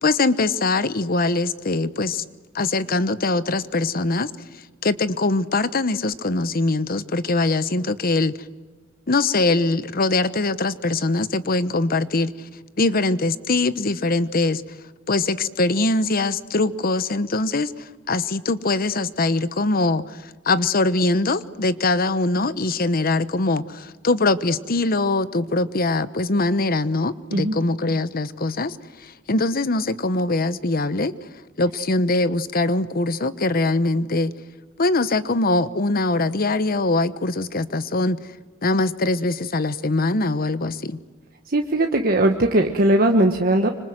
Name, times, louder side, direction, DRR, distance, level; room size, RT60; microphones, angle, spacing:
voice 1, 0.0-2.2 2.5-4.3 4.8-8.3 9.1-12.5 12.8-14.6 15.1-31.1 31.6-34.3 34.8-38.3 38.6-41.0, left 2 dB, 50° left, 14 dB, 1.0 m, -22 dB
voice 2, 41.5-43.7, right 1 dB, 50° right, 4 dB, 1.4 m, -19 dB
26.0 x 25.5 x 7.9 m, 1.4 s
head